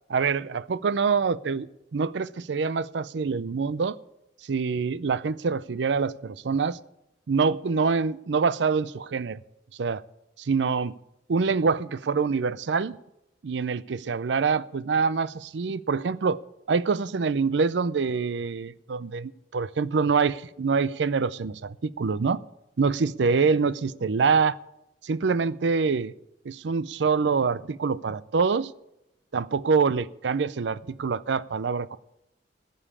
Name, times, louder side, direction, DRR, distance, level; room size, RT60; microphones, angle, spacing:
voice 1, 0.1-4.0 4.5-6.8 7.3-9.4 9.8-10.0 10.4-10.9 11.3-12.9 13.4-16.4 16.7-22.4 22.8-24.6 25.0-26.1 26.4-28.7 29.3-32.0, right 5 dB, 80° right, 0.5 m, -25 dB
14.5 x 5.5 x 9.7 m
head